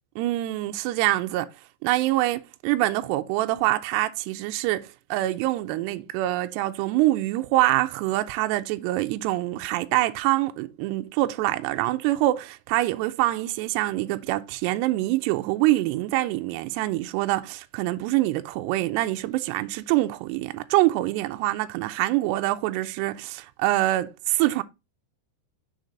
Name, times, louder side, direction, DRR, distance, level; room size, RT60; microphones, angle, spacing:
voice 1, 0.2-1.5 1.8-24.6, right 17 dB, 85° right, 2.4 m, -25 dB
6.5 x 4.0 x 5.0 m
omnidirectional pair, 5.3 m